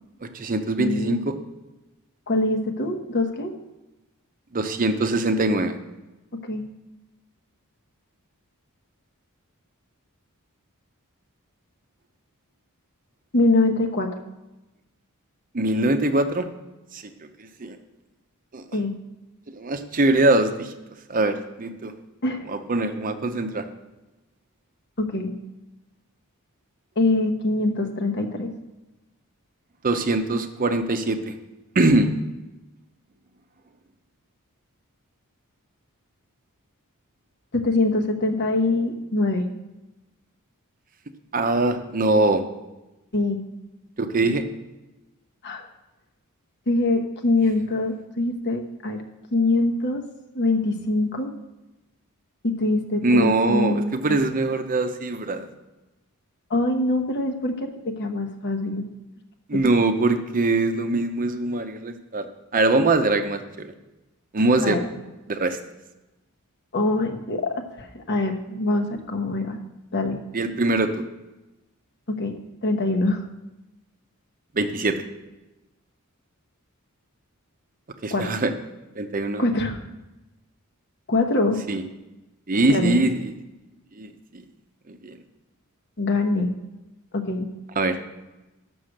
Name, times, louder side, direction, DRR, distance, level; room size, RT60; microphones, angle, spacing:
voice 1, 0.2-1.3 4.5-5.8 15.5-16.5 16.9-17.0 17.6-17.8 18.5-18.6 19.5-20.7 21.1-21.9 22.5-23.6 29.8-31.3 31.7-32.1 41.3-42.4 44.0-44.4 53.0-55.5 59.5-62.2 62.5-63.7 64.3-64.8 65.3-65.6 70.3-70.9 74.5-75.0 78.0-78.5 79.0-79.4 81.7-81.8 82.5-83.3 84.0-84.1 84.9-85.2 87.8-88.0, right 2 dB, 40° right, 7 dB, 0.7 m, -22 dB
voice 2, 0.8-1.2 2.3-3.5 6.4-6.6 13.3-14.1 18.7-18.9 22.2-22.5 25.0-25.3 27.0-28.5 37.5-39.5 43.1-43.4 45.4-45.6 46.7-49.0 49.3-50.0 50.3-51.3 52.4-54.2 56.5-58.9 59.5-59.6 64.6-64.9 66.7-69.6 69.9-70.2 72.1-72.4 72.6-73.2 78.1-78.3 79.4-79.8 81.1-81.6 82.7-83.0 86.0-86.5 87.1-87.5, left 2 dB, 50° left, 4 dB, 1.0 m, -24 dB
7.4 x 6.2 x 6.4 m, 1.0 s
head